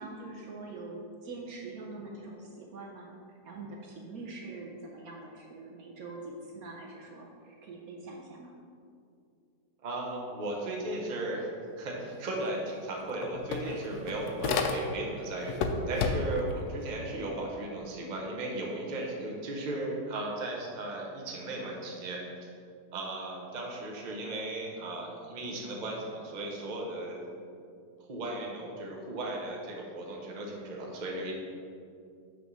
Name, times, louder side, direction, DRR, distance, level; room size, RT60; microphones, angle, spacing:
voice 1, 0.0-3.1 3.4-8.5, right 3 dB, 65° right, -1 dB, 1.1 m, -44 dB
voice 2, 9.8-11.5 11.8-22.5 22.9-27.3 28.1-31.3, right 2 dB, 35° right, -1 dB, 0.8 m, -36 dB
sound 1, 12.5-12.6 12.9-15.1 15.5-16.5, left 4 dB, 75° left, 1.0 m, -31 dB
6.1 x 3.5 x 6.1 m, 2.4 s
omnidirectional pair, 1.8 m